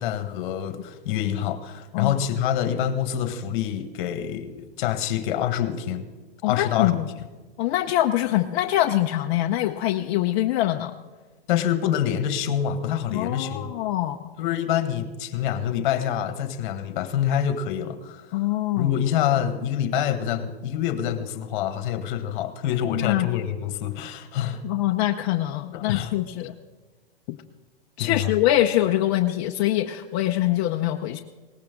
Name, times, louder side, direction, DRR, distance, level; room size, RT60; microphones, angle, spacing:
voice 1, 0.0-6.1 6.4-7.3 11.5-13.7 14.4-18.4 18.8-24.6 25.7-26.1 28.0-28.3, left 10 dB, 50° left, 11 dB, 1.5 m, -26 dB
voice 2, 6.4-7.1 7.6-10.9 13.1-14.2 18.3-18.9 22.9-23.3 24.6-26.5 27.3-27.4 28.0-31.2, left 14 dB, 35° left, 3 dB, 0.6 m, -24 dB
18.0 x 15.0 x 3.8 m, 1.4 s
hypercardioid pair, 145°, 31 cm